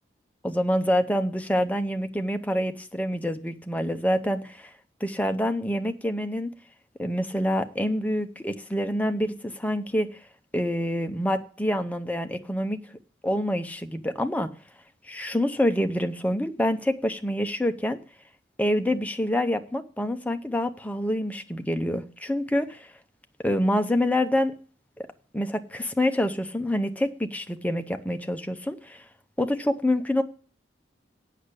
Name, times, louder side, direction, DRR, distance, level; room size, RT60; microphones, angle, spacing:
voice 1, 0.4-4.7 5.0-6.5 7.0-10.2 10.5-12.8 13.2-14.5 15.0-18.0 18.6-22.9 23.4-24.6 25.3-29.0 29.4-30.2, left 1 dB, 10° left, 0.7 m, -26 dB
8.5 x 6.5 x 8.2 m
head